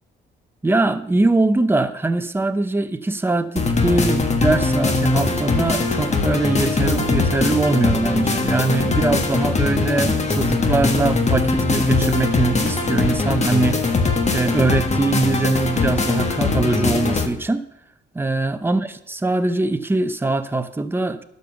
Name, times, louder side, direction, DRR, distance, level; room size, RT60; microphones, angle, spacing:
voice 1, 0.6-13.9 14.3-17.6 18.1-21.2, right 2 dB, 10° right, 0.7 m, -22 dB
sound 1, 3.6-17.3, left 3 dB, 35° left, 1.4 m, -21 dB
11.5 x 5.4 x 7.0 m
cardioid pair, 90°, 20 cm